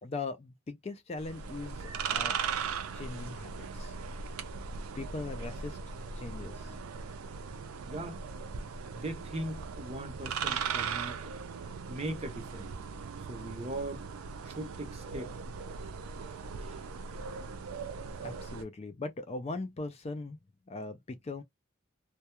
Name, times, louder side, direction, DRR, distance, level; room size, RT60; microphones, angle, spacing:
voice 1, 0.0-2.4 2.9-3.9 5.0-5.8 6.2-6.8 18.2-20.4 20.7-21.0 21.2-21.4, left 3 dB, 30° left, 0.3 m, -40 dB
sound 1, 1.2-18.6, right 6 dB, 85° right, 0.4 m, -38 dB
voice 2, 7.8-8.2 8.9-11.2 11.9-12.7 13.3-14.0 14.4-15.3 16.6-16.8, right 1 dB, 30° right, 0.5 m, -39 dB
2.2 x 2.2 x 2.8 m
head